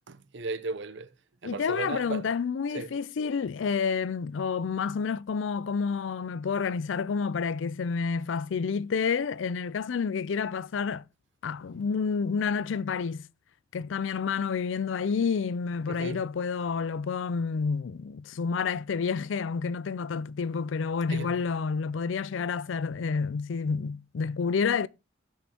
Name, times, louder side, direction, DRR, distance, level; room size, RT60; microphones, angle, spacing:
voice 1, 0.1-1.1 1.4-2.2 2.7-2.9 15.9-16.2 21.1-21.3, right 3 dB, 70° right, 0.7 m, -35 dB
voice 2, 1.4-11.0 11.4-13.2 13.7-24.9, left 5 dB, 80° left, 0.4 m, -29 dB
16.5 x 6.2 x 2.9 m
head